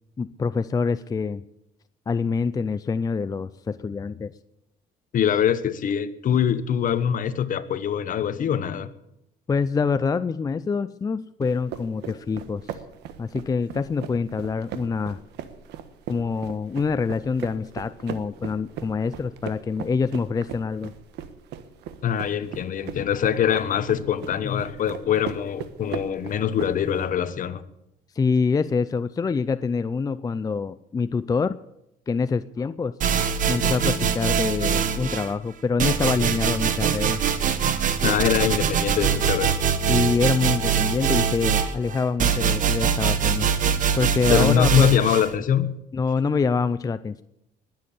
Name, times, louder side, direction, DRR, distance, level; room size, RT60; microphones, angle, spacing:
voice 1, 0.2-1.4 2.1-4.3 9.5-12.8 13.2-15.2 16.1-20.9 28.1-31.6 32.1-33.0 33.5-37.2 39.9-43.5 44.0-44.9 45.9-47.2, left 5 dB, 20° left, 0.5 m, -25 dB
voice 2, 5.1-8.9 22.0-27.6 38.0-39.6 44.3-45.7, left 9 dB, 50° left, 1.2 m, -23 dB
sound 1, 11.4-27.1, right 9 dB, 85° right, 1.4 m, -39 dB
sound 2, 33.0-35.3 35.8-45.3, right 7 dB, 50° right, 1.6 m, -23 dB
21.0 x 7.6 x 8.6 m
cardioid pair, 110°, 17 cm